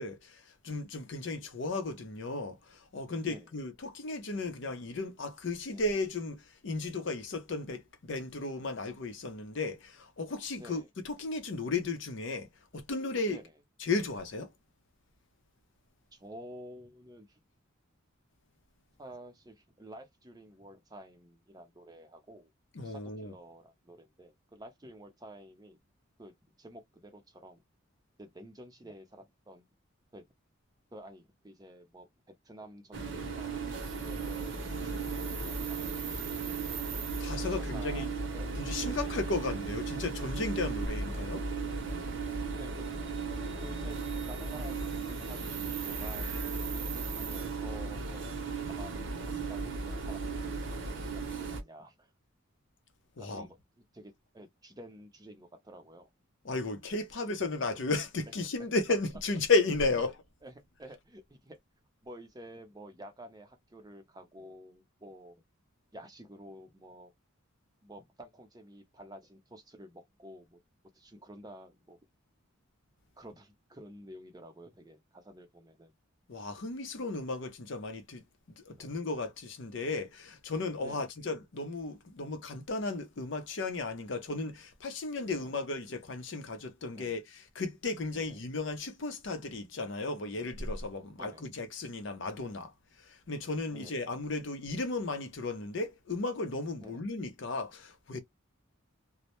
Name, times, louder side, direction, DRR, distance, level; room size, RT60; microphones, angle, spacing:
voice 1, 0.0-12.5 12.7-13.4 13.8-14.5 22.8-23.3 37.2-38.1 38.6-41.4 53.2-53.5 56.4-60.1 76.3-78.2 78.6-92.7 93.0-98.2, left 3 dB, 60° left, 0.6 m, -34 dB
voice 2, 10.6-10.9 13.3-13.5 16.1-17.4 19.0-22.5 22.8-25.8 26.2-27.6 28.2-29.7 30.1-30.2 30.9-32.1 32.4-36.5 37.5-38.1 38.3-39.0 41.1-41.3 42.6-42.9 43.6-48.3 48.6-52.1 53.2-53.6 53.9-56.1 57.7-57.8 58.6-58.7 60.4-60.5 60.8-61.6 62.0-65.4 65.9-67.1 67.8-70.6 70.9-72.0 73.2-75.9 78.8-79.0 80.8-81.1 85.4-85.6 86.9-87.2 88.1-88.4 91.2-91.5 93.7-93.9 96.8-97.0, right 1 dB, 20° right, 0.5 m, -50 dB
sound 1, 32.9-51.6, right 4 dB, 60° right, 0.7 m, -36 dB
2.1 x 2.1 x 2.8 m
head